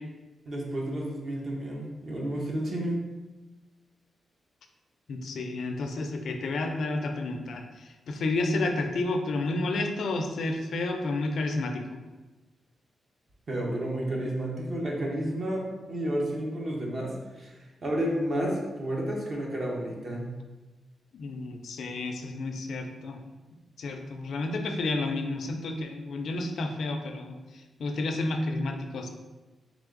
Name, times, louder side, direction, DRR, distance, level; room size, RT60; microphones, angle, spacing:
voice 1, 0.5-3.0 13.5-20.3, right 1 dB, 40° right, -2 dB, 0.9 m, -31 dB
voice 2, 5.1-12.0 21.1-23.2 23.8-29.1, left 2 dB, 65° left, 5 dB, 0.4 m, -31 dB
3.4 x 3.4 x 3.7 m, 1.2 s
wide cardioid pair, 150°, 0 cm